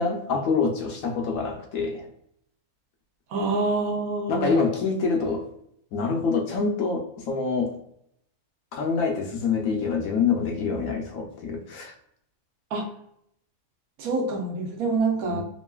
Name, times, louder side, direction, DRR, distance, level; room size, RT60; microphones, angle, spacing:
voice 1, 0.0-2.1 4.3-5.4 5.9-7.8 8.7-11.9 15.3-15.4, left 5 dB, 70° left, 2 dB, 1.0 m, -26 dB
voice 2, 3.3-4.6 12.7-12.9 14.0-15.4, right 3 dB, 70° right, 2 dB, 1.1 m, -26 dB
3.0 x 2.5 x 2.2 m, 0.71 s
omnidirectional pair, 1.6 m